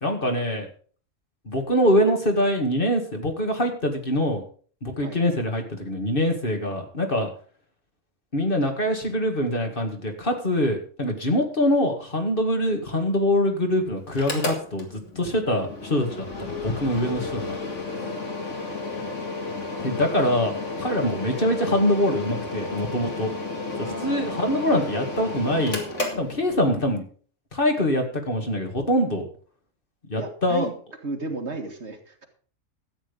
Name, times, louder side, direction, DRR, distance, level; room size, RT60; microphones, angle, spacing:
voice 1, 0.0-0.7 1.5-4.4 4.8-7.3 8.3-17.6 19.8-23.3 23.8-25.8 26.2-27.0 27.5-29.3 30.1-30.7, equal, 45° left, 4 dB, 2.3 m, -24 dB
Mechanical fan, 14.1-26.9, left 3 dB, 65° left, 2.7 m, -32 dB
voice 2, 18.0-18.5 23.8-24.8 30.2-30.7 31.0-32.3, right 3 dB, 60° right, 4 dB, 2.1 m, -35 dB
13.0 x 8.9 x 5.2 m, 0.43 s
omnidirectional pair, 1.3 m